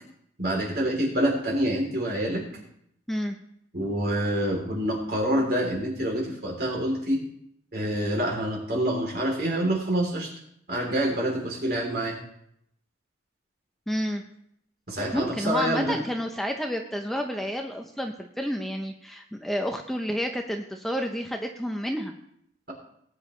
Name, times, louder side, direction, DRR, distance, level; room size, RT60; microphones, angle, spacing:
voice 1, 0.4-2.4 3.7-7.2 7.7-10.3 10.7-12.2 14.9-16.0, right 1 dB, 55° right, -1 dB, 3.4 m, -26 dB
voice 2, 13.9-14.2 15.1-22.1, equal, ahead, 3 dB, 0.6 m, -30 dB
18.5 x 8.8 x 3.2 m, 0.73 s
head